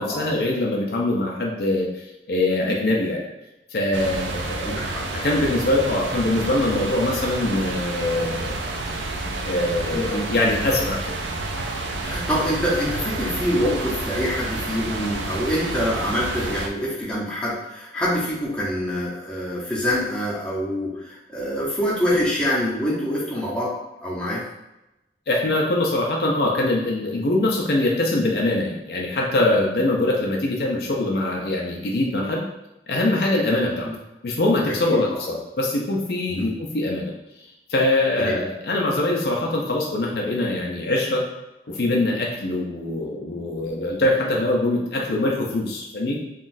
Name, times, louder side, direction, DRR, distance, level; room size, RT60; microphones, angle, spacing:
voice 1, 0.0-3.2 3.7-4.8 5.1-8.5 9.4-11.2 25.3-32.4 32.9-33.9 34.2-37.1 37.7-41.2 41.7-46.2, left 2 dB, 60° left, -1 dB, 0.5 m, -23 dB
sound 1, 3.9-16.7, right 2 dB, 90° right, 0.4 m, -29 dB
voice 2, 4.6-5.1 9.9-10.3 12.0-23.8 24.0-24.4 33.8-33.9 34.9-35.0 36.3-36.5 38.2-38.4, equal, 5° left, -7 dB, 0.7 m, -25 dB
3.7 x 2.4 x 2.5 m, 0.95 s
head